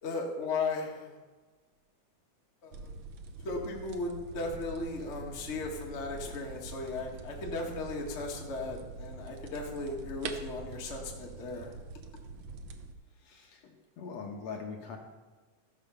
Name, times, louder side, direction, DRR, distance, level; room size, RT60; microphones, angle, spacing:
voice 1, 0.0-1.2 2.6-3.0 3.4-11.7, left 3 dB, 35° left, -1 dB, 1.2 m, -36 dB
sound 1, 2.7-12.9, right 3 dB, 85° right, 1.2 m, -45 dB
voice 2, 13.2-15.0, left 5 dB, 60° left, 1 dB, 2.1 m, -42 dB
14.5 x 6.4 x 5.6 m, 1.3 s
omnidirectional pair, 3.6 m